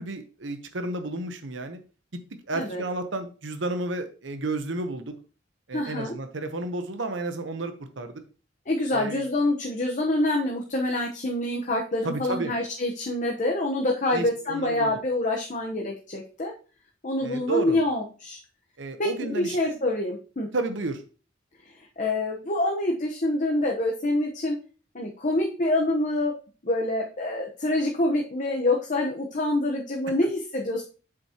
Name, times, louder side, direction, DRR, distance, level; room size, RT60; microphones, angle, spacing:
voice 1, 0.0-1.8 2.5-5.1 5.7-8.1 8.9-9.2 12.0-12.5 14.1-14.9 17.2-17.8 18.8-19.8 20.5-21.0, right 2 dB, 80° right, 8 dB, 0.9 m, -31 dB
voice 2, 2.5-2.8 5.7-6.1 8.7-16.5 17.0-18.4 19.0-20.5 22.0-24.6 24.9-26.3 26.6-30.8, left 1 dB, 45° left, 0 dB, 1.0 m, -26 dB
7.6 x 6.1 x 2.9 m, 0.36 s
head